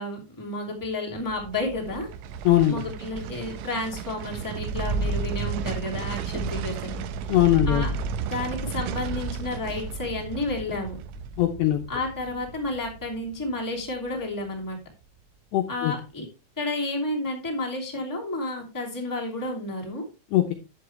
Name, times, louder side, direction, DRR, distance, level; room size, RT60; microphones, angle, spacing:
voice 1, 0.0-2.1 2.7-7.0 7.6-7.9 8.2-11.0 11.9-14.8 15.7-16.3 16.6-20.0, left 2 dB, 10° left, -1 dB, 1.1 m, -31 dB
sound 1, 1.1-14.3 14.6-14.7, right 5 dB, 85° right, 3.0 m, -33 dB
voice 2, 2.5-2.8 7.3-7.9 11.4-11.8 15.5-15.9 20.3-20.5, left 13 dB, 80° left, 3 dB, 2.5 m, -21 dB
11.0 x 8.3 x 3.3 m, 0.29 s
omnidirectional pair, 6.0 m